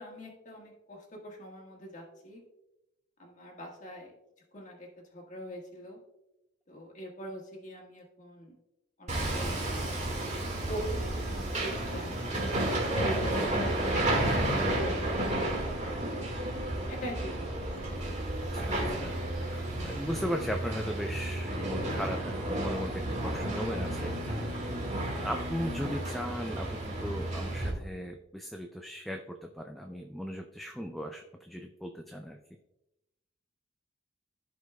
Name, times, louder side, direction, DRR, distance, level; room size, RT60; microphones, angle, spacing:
voice 1, 0.0-2.4 3.2-4.1 4.5-6.0 6.7-8.5 9.0-9.7 10.7-10.9 11.5-15.1 16.9-17.5, equal, 35° left, -1 dB, 1.6 m, -43 dB
Hammer, 9.1-27.7, right 1 dB, 35° right, 1.8 m, -32 dB
voice 2, 18.5-24.6 25.2-32.4, equal, ahead, 3 dB, 0.4 m, -37 dB
15.0 x 5.1 x 2.3 m, 0.93 s
head